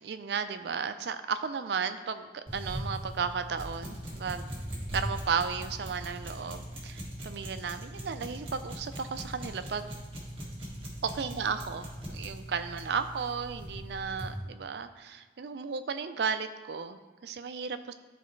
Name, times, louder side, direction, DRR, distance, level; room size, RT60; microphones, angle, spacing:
voice 1, 0.0-4.5 4.9-9.9 11.0-17.9, right 6 dB, 65° right, 10 dB, 0.4 m, -34 dB
sound 1, 2.5-14.4, equal, 30° right, 1.6 m, -40 dB
11.5 x 4.2 x 3.1 m, 1.3 s
head